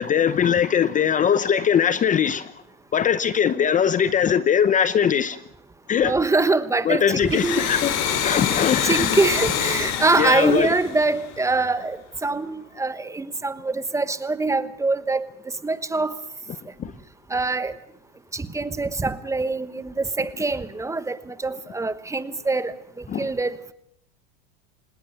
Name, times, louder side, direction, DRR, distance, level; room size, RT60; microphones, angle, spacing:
voice 1, 0.0-2.5 2.9-5.4 5.9-6.2 6.9-7.9 8.2-9.2 10.2-10.7 16.8-16.9 23.1-23.3, left 8 dB, 25° left, 0.8 m, -21 dB
voice 2, 6.0-7.7 8.2-15.3 15.6-16.2 17.3-17.7 18.3-23.7, right 3 dB, 10° right, 1.1 m, -24 dB
Domestic sounds home sounds, 7.2-11.7, left 9 dB, 55° left, 4.6 m, -26 dB
26.5 x 19.5 x 6.9 m
supercardioid pair, 130°, 32 cm